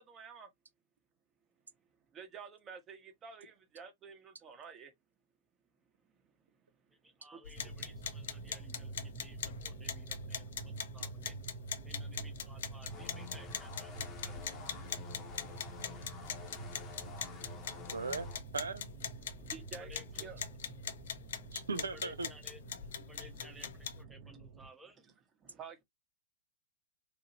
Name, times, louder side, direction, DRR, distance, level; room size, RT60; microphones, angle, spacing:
voice 1, 0.1-0.5 2.1-4.9 7.3-7.7 19.5-20.4 25.4-25.8, right 6 dB, 25° right, 1.0 m, -50 dB
voice 2, 6.9-11.4 11.8-14.6 19.8-20.3 21.9-22.6 23.0-25.1, equal, 5° right, 0.6 m, -57 dB
sound 1, 7.4-24.0, left 8 dB, 65° left, 0.4 m, -43 dB
sound 2, 7.6-24.7, right 4 dB, 45° right, 0.8 m, -48 dB
sound 3, 12.9-18.4, left 6 dB, 30° left, 0.7 m, -50 dB
voice 3, 17.9-18.3 18.5-18.9 21.5-22.3, right 4 dB, 80° right, 0.4 m, -37 dB
2.9 x 2.7 x 2.6 m
figure-of-eight pair, 105°, 0 cm